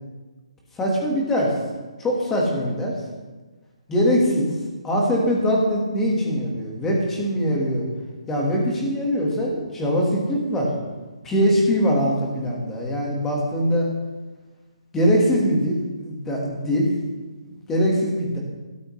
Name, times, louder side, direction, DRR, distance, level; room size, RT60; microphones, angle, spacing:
voice 1, 0.8-1.5 2.0-2.9 3.9-4.5 4.8-7.9 8.3-10.7 11.2-13.8 14.9-16.9 17.7-18.4, equal, 5° left, -2 dB, 1.5 m, -22 dB
16.5 x 12.5 x 3.2 m, 1.3 s
hypercardioid pair, 175°, 3 cm